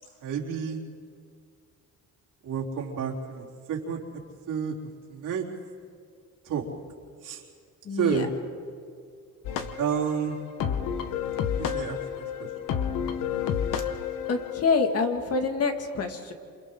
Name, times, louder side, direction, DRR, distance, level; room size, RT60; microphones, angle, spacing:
voice 1, 0.2-0.8 2.4-4.0 4.5-4.7 5.1-5.5 6.4-6.7 7.2-7.4 7.9-8.3 9.8-10.4 11.6-12.5, right 7 dB, 75° right, -3 dB, 3.8 m, -30 dB
voice 2, 7.8-8.3 14.3-16.3, left 4 dB, 50° left, 5 dB, 2.2 m, -26 dB
sound 1, 9.4-14.6, left 8 dB, 85° left, 1.3 m, -30 dB
29.5 x 27.5 x 3.9 m, 2.2 s
cardioid pair, 105°, 32 cm